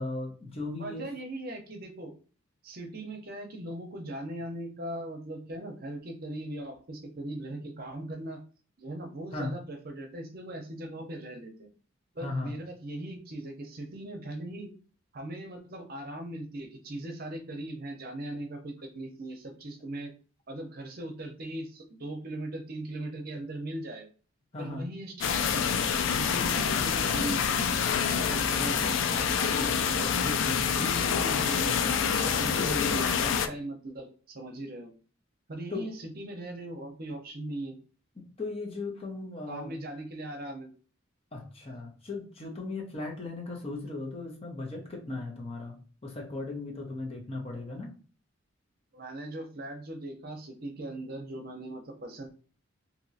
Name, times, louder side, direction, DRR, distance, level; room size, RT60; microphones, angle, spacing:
voice 1, 0.0-1.1 9.3-9.5 12.2-12.5 24.5-24.9 28.4-28.8 30.1-30.7 35.7-35.9 38.2-39.7 41.3-47.9, left 2 dB, 30° left, 0 dB, 0.9 m, -37 dB
voice 2, 0.8-2.1 2.6-8.4 8.8-11.5 12.1-14.7 15.1-20.1 20.5-24.1 24.6-27.4 27.9-30.1 30.6-34.9 35.5-37.8 39.5-40.7 48.9-52.3, right 1 dB, 50° right, 3 dB, 0.7 m, -39 dB
sound 1, 25.2-33.5, left 7 dB, 65° left, 0.3 m, -27 dB
3.0 x 2.8 x 2.7 m, 0.38 s
head